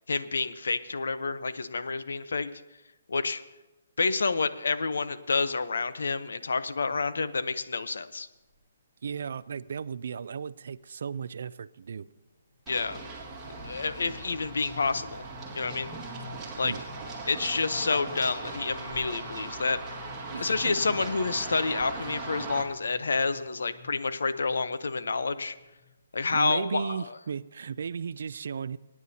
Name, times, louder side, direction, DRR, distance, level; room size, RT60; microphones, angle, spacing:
voice 1, 0.1-2.5 3.1-3.4 4.0-8.3 12.7-13.0 13.6-15.2 15.5-15.9 16.6-16.7 17.2-20.0 20.4-25.5 26.1-27.0, left 4 dB, 85° left, 12 dB, 0.8 m, -29 dB
sound 1, 8.5-8.6 9.0-9.1 9.4-9.7 10.1-26.5, left 6 dB, 15° left, 3.8 m, -51 dB
voice 2, 9.0-12.1 16.6-16.8 20.3-20.8 26.3-28.8, right 6 dB, 60° right, 17 dB, 0.3 m, -35 dB
Run, 12.7-22.6, right 3 dB, 10° right, 1.9 m, -39 dB
25.0 x 9.5 x 2.8 m, 1.1 s
hypercardioid pair, 165°, 0 cm